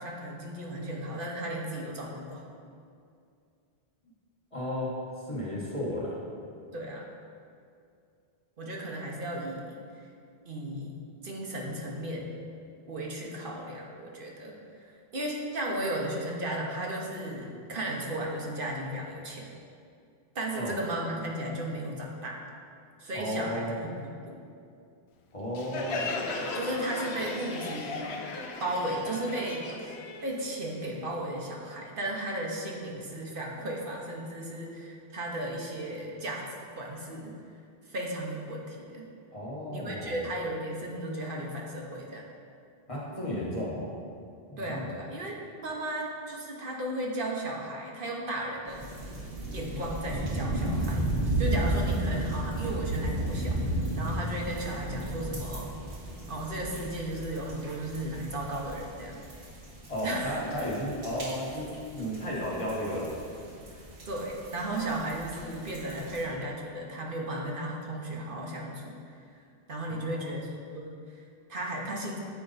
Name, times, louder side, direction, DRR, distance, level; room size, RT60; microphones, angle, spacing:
voice 1, 0.0-2.5 6.7-7.1 8.6-9.8 10.4-10.9 11.2-12.3 12.9-14.6 14.8-19.5 20.3-22.4 23.0-24.4 26.5-28.0 28.6-29.7 30.2-36.4 36.8-37.3 37.9-39.1 39.7-42.3 44.6-48.8 49.5-51.1 51.4-55.7 56.3-59.2 60.0-60.6 64.1-69.2 69.7-72.2, right 1 dB, 60° right, -1 dB, 1.0 m, -35 dB
voice 2, 4.5-4.9 5.3-6.2 20.6-20.8 23.1-23.8 25.3-26.1 39.3-40.2 42.9-43.9 44.5-45.0 59.9-63.2 69.9-70.3, equal, 30° left, -6 dB, 1.3 m, -34 dB
Crowd, 25.6-31.0, left 3 dB, 90° left, 1.0 m, -36 dB
sound 1, 48.7-66.2, right 1 dB, 85° right, 1.7 m, -34 dB
8.5 x 4.4 x 3.9 m, 2.4 s
omnidirectional pair, 1.1 m